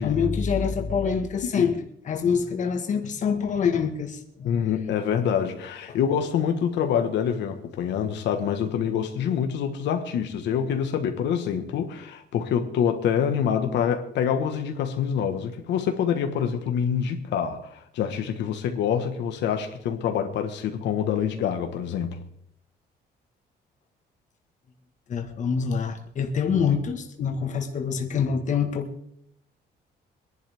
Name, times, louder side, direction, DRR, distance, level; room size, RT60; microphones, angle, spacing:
voice 1, 0.0-1.7 2.0-4.5 25.1-28.9, left 6 dB, 45° left, 1.7 m, -25 dB
voice 2, 4.4-22.2, left 8 dB, 90° left, 1.5 m, -26 dB
23.0 x 11.0 x 3.6 m
cardioid pair, 155°, 18 cm